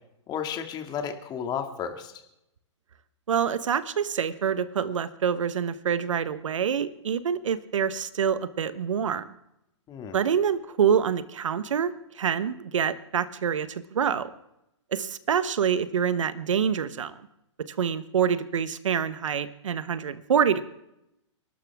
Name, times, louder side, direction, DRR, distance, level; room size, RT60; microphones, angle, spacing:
voice 1, 0.3-2.1 9.9-10.2, left 7 dB, 25° left, 5 dB, 2.2 m, -33 dB
voice 2, 3.3-9.2 10.1-14.3 14.9-17.1 17.8-20.7, right 7 dB, 75° right, 13 dB, 1.2 m, -26 dB
29.5 x 12.5 x 3.6 m, 0.85 s
hypercardioid pair, 120°, 16 cm